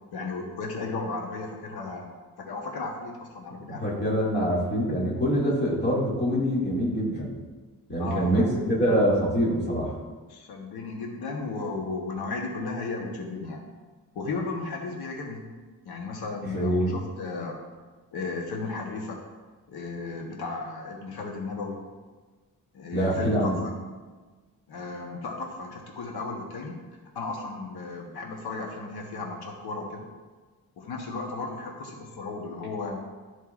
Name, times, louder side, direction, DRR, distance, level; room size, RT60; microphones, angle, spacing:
voice 1, 0.1-2.1 2.4-3.8 4.2-4.4 8.0-8.5 10.3-13.6 14.1-15.5 15.8-17.6 18.1-19.2 19.7-21.8 22.7-23.7 24.7-26.8 27.1-30.1 30.8-33.0, left 3 dB, 85° left, 0 dB, 1.0 m, -35 dB
voice 2, 3.7-7.4 7.9-10.0 16.4-17.0 22.9-23.6, equal, 30° left, -6 dB, 2.1 m, -25 dB
12.5 x 4.5 x 2.4 m, 1.3 s
wide cardioid pair, 150°, 37 cm